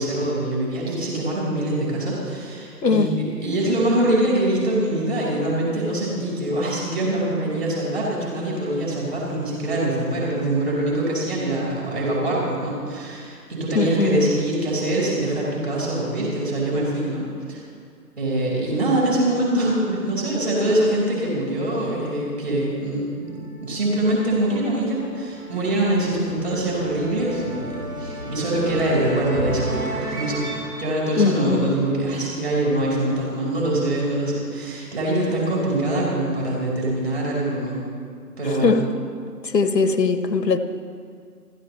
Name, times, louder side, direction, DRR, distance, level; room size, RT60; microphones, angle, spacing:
voice 1, 0.0-3.1 3.4-17.6 18.2-30.4 30.8-37.8 38.4-38.8, right 1 dB, 40° right, 4.9 m, -24 dB
voice 2, 2.8-3.1 13.7-14.3 31.2-31.7 38.6-38.9 39.4-40.6, left 4 dB, 75° left, 1.4 m, -20 dB
sound 1, 23.2-32.3, right 1 dB, 85° right, 4.8 m, -33 dB
29.5 x 14.0 x 3.3 m
figure-of-eight pair, 175°, 49 cm